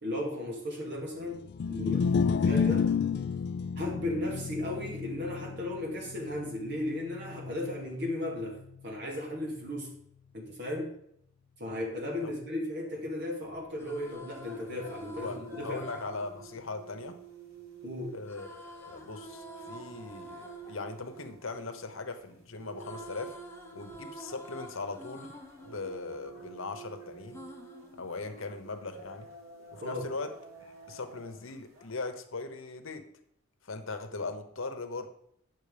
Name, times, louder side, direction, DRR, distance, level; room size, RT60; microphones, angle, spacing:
voice 1, 0.0-2.9 3.8-9.9 10.3-10.9 11.6-15.8 17.8-18.2 29.8-30.1, left 1 dB, 55° right, 0 dB, 2.5 m, -35 dB
sound 1, 1.5-7.9, left 6 dB, 55° left, 0.3 m, -30 dB
sound 2, 13.6-17.7 18.3-22.3 22.6-26.8 27.3-28.8, equal, 10° left, 1.0 m, -49 dB
sound 3, 14.5-31.9, right 5 dB, 80° right, 2.0 m, -51 dB
voice 2, 15.2-17.2 18.1-23.4 23.7-25.4 25.6-27.4 28.0-29.3 29.7-30.3 30.9-33.1 33.6-35.1, left 3 dB, 70° left, 7 dB, 1.0 m, -39 dB
9.6 x 6.3 x 5.1 m, 0.72 s
head